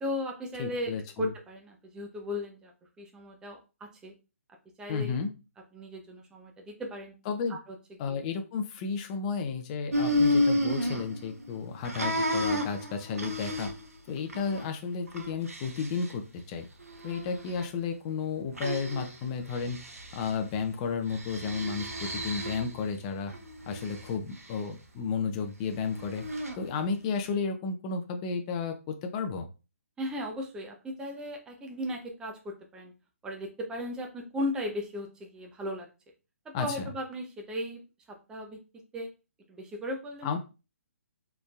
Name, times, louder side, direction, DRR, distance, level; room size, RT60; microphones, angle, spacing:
voice 1, 0.0-0.9 1.2-2.7 3.0-3.6 4.0-4.1 4.8-5.2 5.7-7.1 7.5-7.8 8.1-8.2 30.0-32.9 33.2-35.9 36.5-37.8 38.3-38.6 38.9-39.1 39.5-40.3, left 1 dB, 10° right, 2 dB, 0.7 m, -36 dB
voice 2, 0.6-1.3 4.9-5.3 7.3-7.6 8.0-13.7 14.1-16.7 17.0-19.8 20.1-23.3 23.7-26.2 26.6-29.5 36.5-36.9 40.2-40.4, left 5 dB, 30° left, 6 dB, 0.6 m, -32 dB
sound 1, 9.9-11.5 11.8-13.9 14.3-14.6 15.1-16.1 16.8-17.7 18.6-19.2 19.5-20.3 21.1-22.8 23.3-24.1 25.9-26.6, left 1 dB, 80° right, 1.0 m, -31 dB
4.1 x 3.4 x 2.4 m, 0.30 s
figure-of-eight pair, 140°, 8 cm